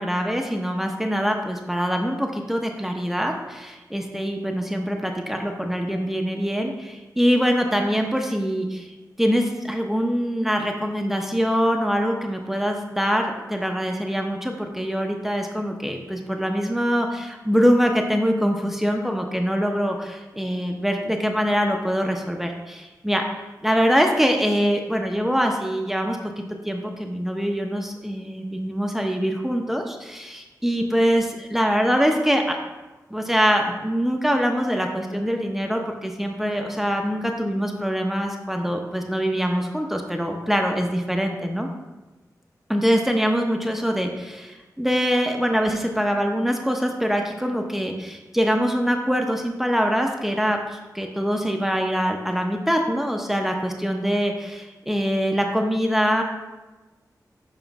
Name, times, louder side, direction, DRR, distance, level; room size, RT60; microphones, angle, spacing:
voice 1, 0.0-8.9 9.2-23.2 23.6-26.2 26.6-32.6 33.1-41.7 42.7-56.2, equal, 5° right, 2 dB, 0.7 m, -24 dB
9.1 x 3.2 x 5.9 m, 1.1 s
wide cardioid pair, 125°, 7 cm